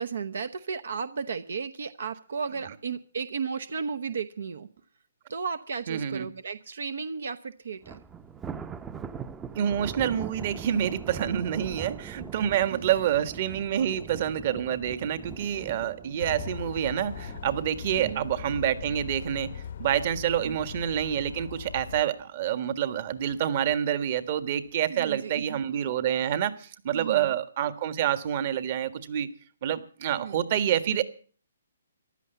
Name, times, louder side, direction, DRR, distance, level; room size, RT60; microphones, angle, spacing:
voice 1, 0.0-4.7 5.3-8.0 12.7-12.8 13.8-13.9 18.0-18.3 20.4-20.6 24.9-25.6 26.9-27.3 30.2-30.4, right 5 dB, 70° right, 13 dB, 0.9 m, -34 dB
voice 2, 5.9-6.3 9.5-29.3 29.6-31.0, right 10 dB, 40° right, 13 dB, 1.6 m, -27 dB
Thunder, 7.8-21.1 21.5-21.8 22.2-22.3 23.2-23.7, right 7 dB, 10° right, 0.7 m, -42 dB
sound 1, 16.2-22.0, left 8 dB, 60° left, 0.7 m, -40 dB
15.5 x 11.5 x 7.0 m, 0.43 s
hypercardioid pair, 150°, 0 cm